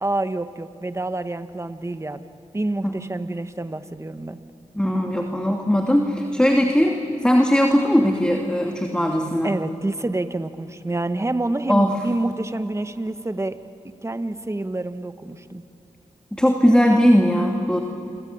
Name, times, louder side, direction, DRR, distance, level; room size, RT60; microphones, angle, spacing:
voice 1, 0.0-2.2 2.5-4.4 9.4-13.6 14.0-15.6, right 2 dB, 20° right, 10 dB, 1.4 m, -27 dB
voice 2, 4.7-9.5 11.7-12.0 16.3-17.8, equal, 5° left, 2 dB, 2.6 m, -19 dB
28.5 x 23.0 x 8.8 m, 3.0 s
cardioid pair, 50°, 13 cm